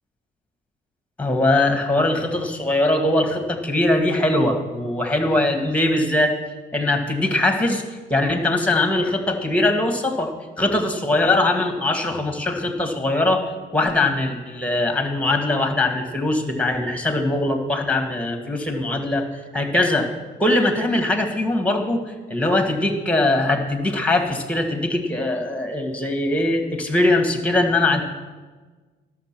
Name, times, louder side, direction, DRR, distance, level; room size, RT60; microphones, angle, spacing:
voice 1, 1.2-6.4 6.7-13.5 13.7-19.2 19.5-20.1 20.4-28.0, left 2 dB, 5° left, 4 dB, 1.6 m, -21 dB
12.0 x 6.6 x 5.9 m, 1.3 s
cardioid pair, 90°, 20 cm